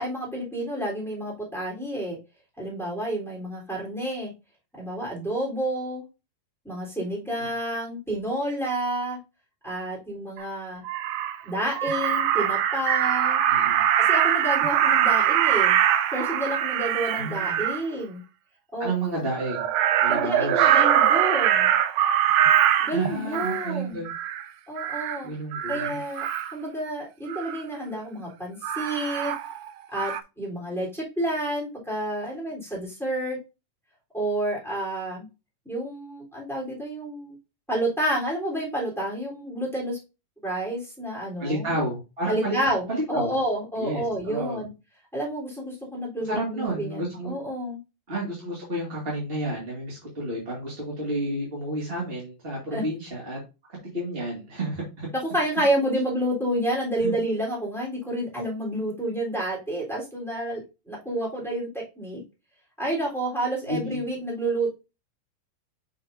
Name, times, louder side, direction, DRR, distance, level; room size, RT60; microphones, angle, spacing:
voice 1, 0.0-2.2 2.6-4.3 4.8-6.0 6.6-9.2 9.6-10.8 11.4-13.4 14.0-15.8 16.1-18.2 18.7-18.9 20.1-21.7 22.8-24.0 24.7-25.3 25.7-26.2 26.5-29.3 29.9-33.4 34.1-35.3 35.6-37.4 37.7-40.0 40.4-41.7 42.3-44.7 45.1-47.8 52.7-52.8 55.2-60.6 60.9-61.7 61.9-62.2 62.8-64.7, right 1 dB, ahead, -4 dB, 3.0 m, -29 dB
Crow, 10.4-10.5 10.8-11.4 11.8-17.8 19.4-23.7 24.1-24.4 24.8-25.2 25.5-26.5 27.3-27.6 28.6-29.7 29.9-30.2, right 10 dB, 80° right, 1.9 m, -23 dB
voice 2, 13.5-13.8 17.1-17.6 18.8-19.7 20.0-20.8 22.9-24.1 25.2-26.0 41.4-42.6 42.9-43.3 43.8-44.6 46.3-47.3 48.1-53.4 53.9-55.1 57.0-57.1 63.7-64.0, right 1 dB, 20° right, -4 dB, 1.7 m, -31 dB
7.0 x 6.3 x 2.7 m, 0.28 s
omnidirectional pair, 3.9 m